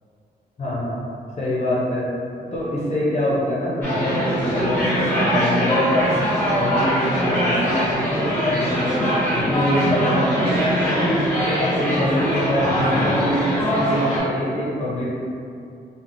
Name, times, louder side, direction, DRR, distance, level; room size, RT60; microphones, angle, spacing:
voice 1, 0.6-1.0 1.4-2.1 2.5-6.1 6.5-15.1, equal, 40° left, -7 dB, 0.6 m, -24 dB
sound 1, 3.8-14.2, equal, 10° left, 1.0 m, -22 dB
3.2 x 2.1 x 2.5 m, 2.5 s
wide cardioid pair, 110°, 17 cm